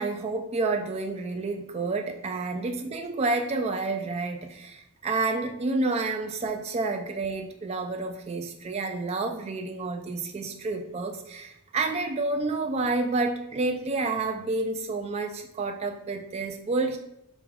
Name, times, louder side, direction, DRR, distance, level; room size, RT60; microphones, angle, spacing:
voice 1, 0.0-17.0, right 3 dB, 30° right, 5 dB, 0.3 m, -29 dB
4.9 x 3.1 x 3.5 m, 0.83 s
head